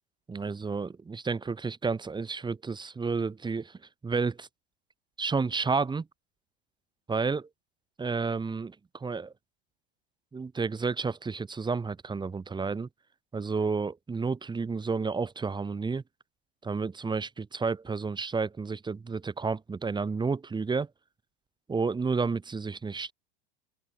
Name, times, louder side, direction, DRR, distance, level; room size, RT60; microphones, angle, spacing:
voice 1, 0.3-3.7 4.0-4.5 5.2-6.1 7.1-7.5 8.0-8.7 9.0-9.3 10.3-12.9 13.3-16.0 16.6-20.9 21.7-23.1, right 4 dB, 15° right, 2.7 m, -31 dB
open air
hypercardioid pair, 100°, 31 cm